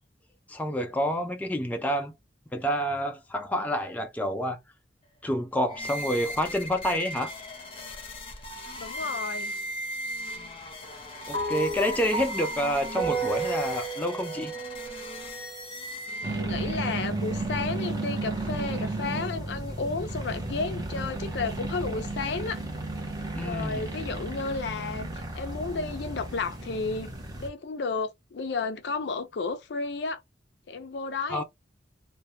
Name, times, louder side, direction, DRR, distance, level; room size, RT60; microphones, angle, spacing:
voice 1, 0.5-2.1 2.5-4.6 5.2-7.3 11.3-14.5 23.3-23.9 31.3-31.4, equal, 10° left, 0.3 m, -28 dB
sound 1, 5.7-16.7, equal, 30° left, 0.7 m, -38 dB
voice 2, 8.8-9.5 16.4-22.6 23.4-25.1 25.3-27.1 27.4-30.2 30.7-31.4, left 4 dB, 70° left, 0.4 m, -32 dB
sound 2, 11.3-15.8, right 4 dB, 60° right, 0.6 m, -33 dB
sound 3, 16.2-27.5, right 2 dB, 20° right, 0.8 m, -33 dB
2.2 x 2.1 x 2.7 m
head